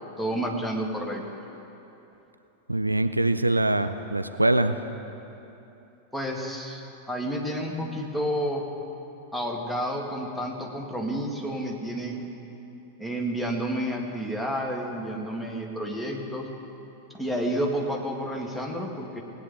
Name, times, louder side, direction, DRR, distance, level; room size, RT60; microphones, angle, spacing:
voice 1, 0.2-1.2 6.1-8.6 9.3-12.3 13.0-16.5 17.1-19.2, equal, 5° left, 0 dB, 1.5 m, -30 dB
voice 2, 2.7-4.8, right 2 dB, 85° right, 9 dB, 0.4 m, -23 dB
18.5 x 9.2 x 3.8 m, 3.0 s
figure-of-eight pair, 90°, 0 cm